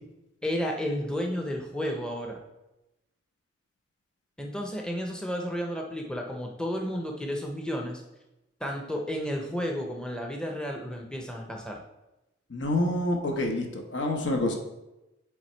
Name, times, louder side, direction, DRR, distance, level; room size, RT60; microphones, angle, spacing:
voice 1, 0.4-2.4 4.4-8.0 8.6-11.8, equal, 5° left, 1 dB, 0.6 m, -32 dB
voice 2, 12.5-14.5, left 1 dB, 75° left, 3 dB, 1.0 m, -27 dB
7.9 x 3.5 x 4.4 m, 0.97 s
head